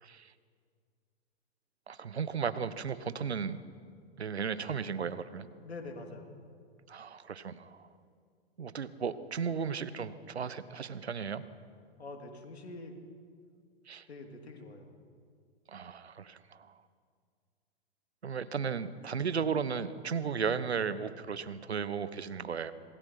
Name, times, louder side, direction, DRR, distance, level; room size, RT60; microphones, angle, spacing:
voice 1, 0.0-0.3 1.9-3.6 4.2-5.5 6.9-7.9 8.6-11.4 13.9-14.1 15.7-16.7 18.2-22.7, right 6 dB, 80° right, 14 dB, 1.2 m, -35 dB
voice 2, 5.6-6.4 12.0-13.0 14.1-15.0, left 2 dB, 80° left, 3 dB, 3.4 m, -45 dB
27.0 x 20.0 x 5.8 m, 2.1 s
figure-of-eight pair, 110°, 32 cm